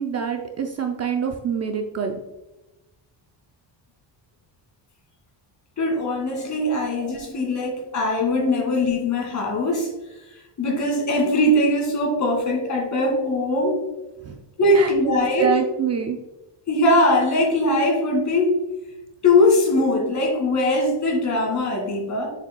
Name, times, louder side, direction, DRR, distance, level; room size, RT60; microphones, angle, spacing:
voice 1, 0.0-2.1 6.3-7.3 7.9-8.1 8.4-8.5 14.2-14.4 14.7-16.2, right 7 dB, 35° right, 4 dB, 0.5 m, -27 dB
voice 2, 5.8-9.9 10.6-13.8 14.6-15.5 16.7-18.6 19.2-22.3, left 1 dB, 40° left, 0 dB, 2.1 m, -21 dB
7.0 x 6.8 x 2.2 m, 1.0 s
cardioid pair, 170°, 45 cm